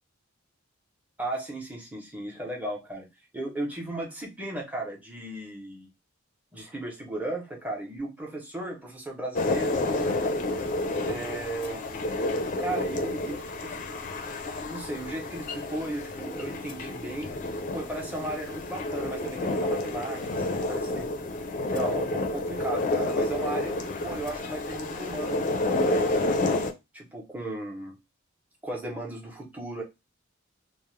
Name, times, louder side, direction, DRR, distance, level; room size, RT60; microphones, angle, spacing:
voice 1, 1.2-3.1 3.3-5.9 6.5-10.3 11.1-12.1 12.6-13.8 14.7-21.1 21.7-26.4 26.9-28.0 28.6-29.8, right 1 dB, 10° right, -2 dB, 0.7 m, -36 dB
sound 1, 9.3-26.7, left 2 dB, 40° left, 0.4 m, -30 dB
2.3 x 2.0 x 3.0 m, 0.22 s
head